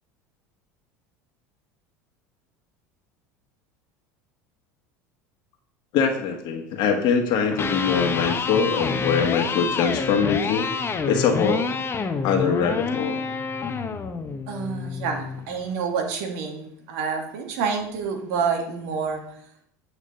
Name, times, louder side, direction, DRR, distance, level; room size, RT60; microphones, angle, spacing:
voice 1, 5.9-10.6 11.0-11.6 12.2-13.2, left 6 dB, 60° left, 2 dB, 1.4 m, -23 dB
Electric guitar, 7.5-15.5, left 5 dB, 25° left, 1.0 m, -28 dB
voice 2, 14.5-19.2, right 5 dB, 70° right, 3 dB, 2.1 m, -28 dB
8.6 x 4.8 x 6.7 m, 0.71 s
hypercardioid pair, 90°, 9 cm